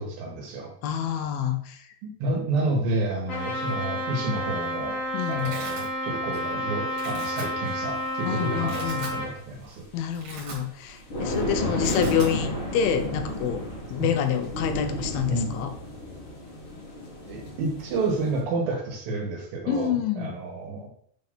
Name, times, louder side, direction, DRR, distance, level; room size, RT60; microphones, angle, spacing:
voice 1, 0.0-0.7 2.0-5.0 5.3-9.8 12.4-12.5 15.3-15.5 17.3-20.9, right 2 dB, 75° right, 0 dB, 3.0 m, -30 dB
voice 2, 0.8-1.9 5.1-5.6 8.2-9.1 9.9-13.7 13.9-15.7 19.7-20.4, left 8 dB, 85° left, 7 dB, 2.5 m, -27 dB
Trumpet, 3.3-9.3, equal, 35° left, 1.3 m, -30 dB
Domestic sounds home sounds, 4.6-4.7 5.0-5.9 6.3-6.6 6.9-7.4 8.1-8.2 8.5-9.2 9.6-9.7 10.0-11.0 11.2-11.4 11.7-12.3, right 3 dB, 55° right, 3.1 m, -40 dB
sound 1, 7.7-8.0 8.8-8.9 9.2-9.3 10.9-18.4, left 1 dB, 55° left, 1.4 m, -32 dB
7.7 x 3.8 x 3.6 m, 0.64 s
omnidirectional pair, 4.2 m